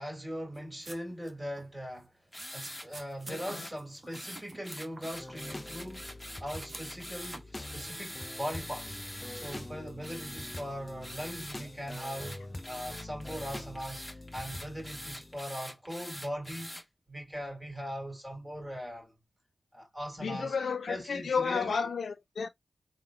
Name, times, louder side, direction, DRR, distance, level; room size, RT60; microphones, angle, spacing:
voice 1, 0.0-2.1 2.5-6.0 6.4-9.0 9.3-12.4 12.7-14.0 14.3-16.8 17.1-19.1 19.7-20.5 20.9-21.9, equal, 15° right, 1.8 m, -40 dB
sound 1, 0.5-1.3 1.6-1.7 2.3-5.4 5.6-6.3 6.7-7.4, right 2 dB, 40° right, 0.7 m, -49 dB
sound 2, 2.3-2.9 3.3-3.7 4.1-9.6 10.0-10.6 11.0-11.6 11.9-16.8, equal, 5° left, 1.2 m, -44 dB
voice 2, 3.3-3.7 20.2-22.5, left 5 dB, 90° left, 0.4 m, -32 dB
sound 3, 5.1-15.4, left 2 dB, 25° left, 0.3 m, -45 dB
3.7 x 2.1 x 2.2 m
cardioid pair, 65°, 0 cm